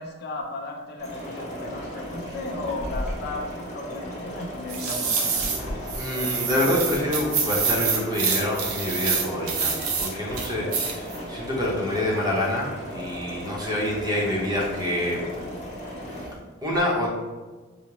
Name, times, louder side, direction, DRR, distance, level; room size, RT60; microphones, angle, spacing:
voice 1, 0.0-5.5, left 2 dB, 50° left, 1 dB, 0.5 m, -35 dB
sound 1, 1.0-16.3, equal, 35° left, 1.0 m, -36 dB
sound 2, 4.7-5.6 5.9-10.1 10.3-11.2 11.5-11.7, right 5 dB, 85° right, 0.6 m, -26 dB
voice 2, 5.6-15.2 16.6-17.1, left 1 dB, 20° right, -3 dB, 0.7 m, -27 dB
4.7 x 2.0 x 2.9 m, 1.3 s
head